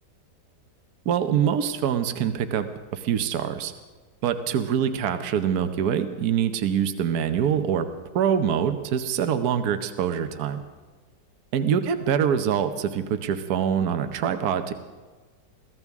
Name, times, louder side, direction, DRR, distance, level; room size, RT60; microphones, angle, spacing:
voice 1, 1.0-3.7 4.2-7.9 8.1-10.6 11.5-14.7, right 8 dB, 65° right, 8 dB, 1.3 m, -24 dB
23.0 x 15.5 x 3.6 m, 1.4 s
omnidirectional pair, 1.8 m